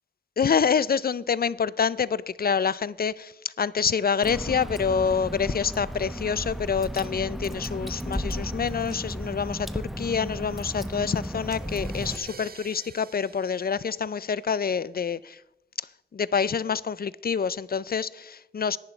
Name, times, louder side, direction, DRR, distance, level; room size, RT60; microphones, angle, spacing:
voice 1, 0.4-15.4 16.1-18.8, left 6 dB, 55° left, 0.4 m, -27 dB
Water / Drip, 4.2-12.2, equal, ahead, 0.9 m, -34 dB
Crash cymbal, 11.4-15.1, right 5 dB, 55° right, 0.6 m, -49 dB
11.0 x 9.8 x 4.4 m
wide cardioid pair, 75°, 19 cm